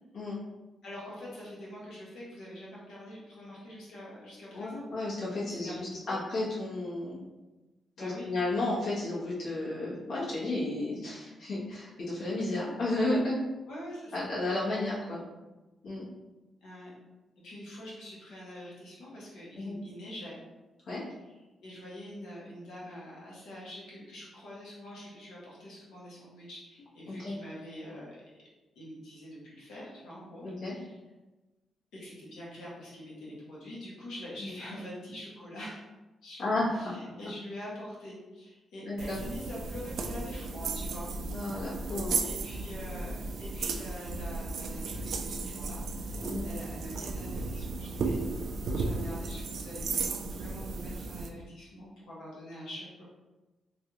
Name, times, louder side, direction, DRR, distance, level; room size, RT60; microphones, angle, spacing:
voice 1, 0.8-4.9 5.6-6.2 8.0-8.3 13.7-14.3 16.6-16.9 17.4-20.4 21.6-28.4 28.7-30.9 31.9-35.8 36.2-41.1 42.2-48.2 48.7-53.0, equal, 90° left, -6 dB, 1.2 m, -45 dB
voice 2, 4.5-7.2 8.0-13.4 14.1-15.2 15.8-16.1 19.5-19.8 20.9-21.0 27.1-27.3 30.4-30.7 34.4-34.5 36.4-37.0 38.8-39.2 41.3-42.3 46.2-46.5, left 2 dB, 70° left, -8 dB, 1.3 m, -33 dB
sound 1, 39.0-51.3, right 3 dB, 70° right, 0.3 m, -35 dB
3.1 x 2.5 x 2.9 m, 1.1 s
cardioid pair, 90°, 0 cm